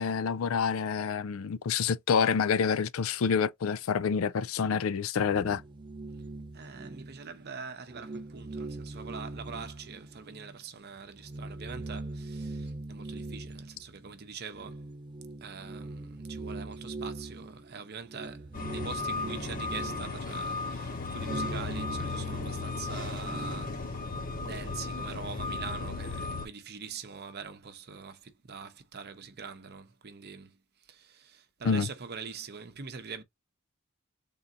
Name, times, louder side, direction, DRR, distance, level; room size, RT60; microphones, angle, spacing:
voice 1, 0.0-5.6 31.6-31.9, left 6 dB, 75° left, 0.4 m, -27 dB
sound 1, 5.3-7.5 7.9-10.6 11.0-23.8, right 2 dB, 25° right, 0.3 m, -42 dB
voice 2, 6.5-14.8 15.4-24.0 24.4-30.6 30.9-33.2, right 5 dB, 50° right, 0.8 m, -44 dB
sound 2, 18.5-26.5, left 3 dB, 40° left, 0.9 m, -35 dB
3.8 x 2.6 x 3.8 m
head